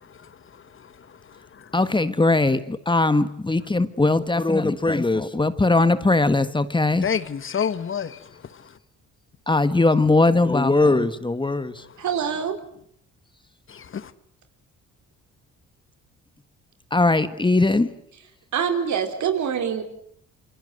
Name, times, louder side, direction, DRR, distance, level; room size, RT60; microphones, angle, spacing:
voice 1, 0.0-1.7 7.0-8.8 13.7-14.1, left 7 dB, 45° left, 1.4 m, -31 dB
voice 2, 1.7-7.0 9.5-11.8 16.9-17.9, left 2 dB, 15° left, 1.6 m, -20 dB
voice 3, 12.0-12.6 18.5-19.8, right 7 dB, 70° right, 4.7 m, -25 dB
27.5 x 26.0 x 8.0 m
cardioid pair, 90°, 30 cm